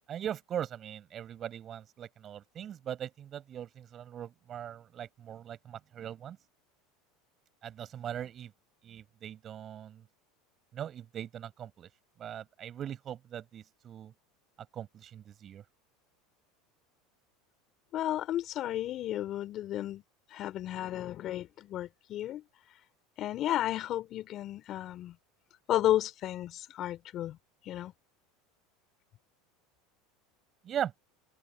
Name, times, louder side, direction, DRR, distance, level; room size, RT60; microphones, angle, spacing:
voice 1, 0.1-6.4 7.6-8.5 8.8-10.0 10.7-11.9 12.2-14.1 14.7-15.6 30.6-30.9, right 10 dB, 40° right, 6.8 m, -40 dB
voice 2, 17.9-20.0 20.3-22.4 23.2-25.1 25.7-27.4 27.6-27.9, left 13 dB, 50° left, 4.8 m, -33 dB
hypercardioid pair, 95°, 0 cm